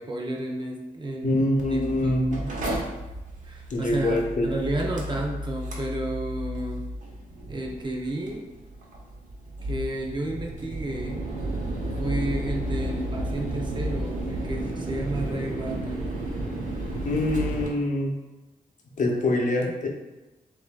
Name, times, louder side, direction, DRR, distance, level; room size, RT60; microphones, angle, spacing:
voice 1, 0.0-1.4 1.7-2.2 3.4-6.9 7.5-8.5 9.6-11.2 12.0-16.1, right 2 dB, 30° right, 0 dB, 0.7 m, -32 dB
voice 2, 1.2-2.5 3.7-4.5 17.0-18.2 19.0-19.9, left 1 dB, 55° left, 0 dB, 0.7 m, -25 dB
Mechanical fan, 1.6-17.7, right 1 dB, 60° right, 1.0 m, -32 dB
7.0 x 2.6 x 2.4 m, 1.1 s
cardioid pair, 90°, 15 cm